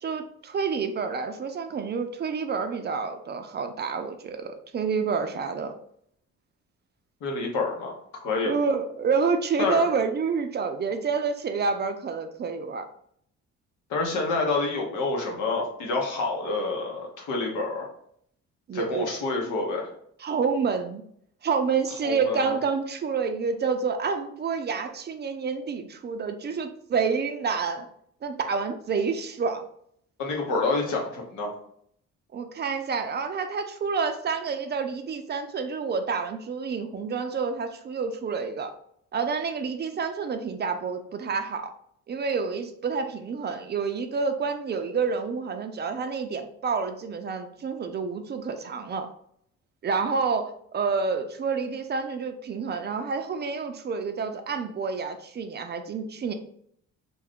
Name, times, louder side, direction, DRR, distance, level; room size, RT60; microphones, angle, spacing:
voice 1, 0.0-5.7 8.4-12.9 18.7-19.1 20.2-21.0 21.4-27.9 28.2-29.6 32.3-38.7 39.1-41.7 42.1-49.1 49.8-56.3, right 5 dB, 35° right, 7 dB, 0.4 m, -28 dB
voice 2, 7.2-7.9 8.2-8.5 9.6-9.9 13.9-17.9 18.7-19.9 22.0-22.5 30.2-31.5, left 3 dB, 85° left, 0 dB, 0.9 m, -28 dB
2.5 x 2.3 x 3.5 m, 0.67 s
cardioid pair, 90°, 30 cm